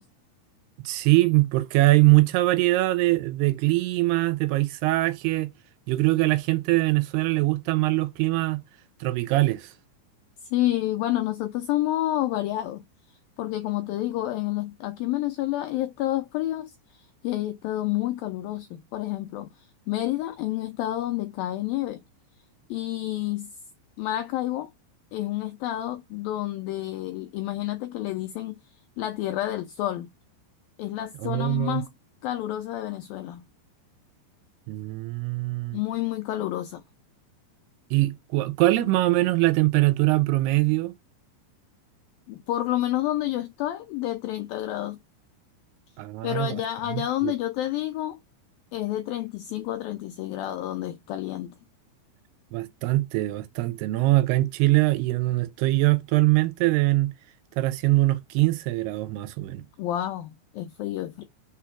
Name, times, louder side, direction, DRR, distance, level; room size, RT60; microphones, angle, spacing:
voice 1, 0.9-5.5 5.9-8.6 9.0-9.7 31.2-31.8 34.7-35.8 37.9-40.9 46.0-46.6 46.9-47.3 52.5-57.1 57.6-59.6, right 19 dB, 80° right, 2.4 m, -22 dB
voice 2, 10.4-12.8 13.4-22.0 22.7-23.5 24.0-24.7 25.1-28.6 29.0-30.1 30.8-31.9 32.2-33.4 35.7-36.8 42.3-45.0 46.2-48.2 48.7-51.5 59.8-61.2, left 14 dB, 85° left, 2.0 m, -29 dB
6.0 x 4.3 x 5.7 m
omnidirectional pair, 5.2 m